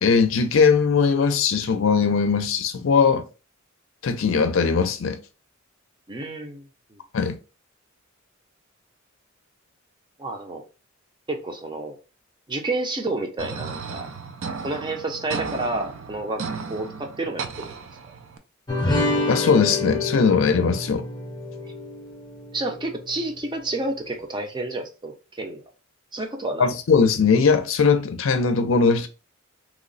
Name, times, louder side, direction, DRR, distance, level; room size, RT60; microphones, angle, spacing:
voice 1, 0.0-3.2 4.0-5.2 7.1-7.4 19.3-21.1 26.6-29.1, left 5 dB, 70° left, 0.5 m, -20 dB
voice 2, 6.1-7.0 10.2-10.6 11.3-12.0 12.5-14.1 14.6-16.4 16.7-17.8 22.5-25.6 26.1-26.7, right 2 dB, 25° right, 0.5 m, -30 dB
sound 1, 13.4-18.4, right 5 dB, 70° right, 0.5 m, -34 dB
sound 2, 18.7-23.4, left 2 dB, 20° left, 0.6 m, -28 dB
2.9 x 2.0 x 3.9 m
head